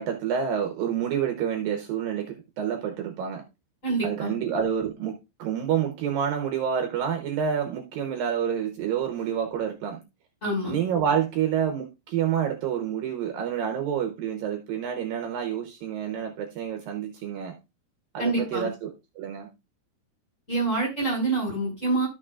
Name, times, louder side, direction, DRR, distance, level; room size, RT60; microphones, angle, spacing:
voice 1, 0.0-3.4 4.0-10.0 10.7-17.5 18.1-19.5, right 8 dB, 70° right, 4 dB, 2.6 m, -28 dB
voice 2, 3.8-4.3 10.4-10.8 18.2-18.7 20.5-22.1, right 3 dB, 20° left, -1 dB, 5.7 m, -26 dB
13.5 x 6.4 x 2.4 m, 0.25 s
omnidirectional pair, 4.5 m